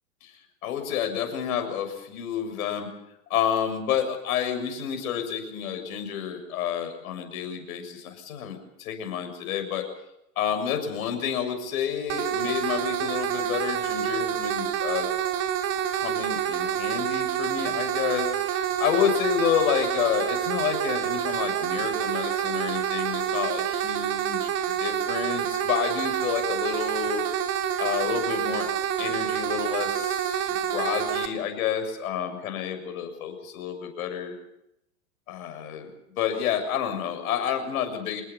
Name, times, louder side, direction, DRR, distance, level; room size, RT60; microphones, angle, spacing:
voice 1, 0.2-2.9 3.3-9.8 10.4-15.1 15.9-27.2 27.8-28.7 29.0-34.3 35.3-35.9 36.2-38.2, left 9 dB, 65° left, 6 dB, 7.0 m, -29 dB
sound 1, 12.1-31.3, right 10 dB, 30° right, 3.5 m, -27 dB
26.0 x 20.0 x 7.4 m, 0.82 s
hypercardioid pair, 120°, 46 cm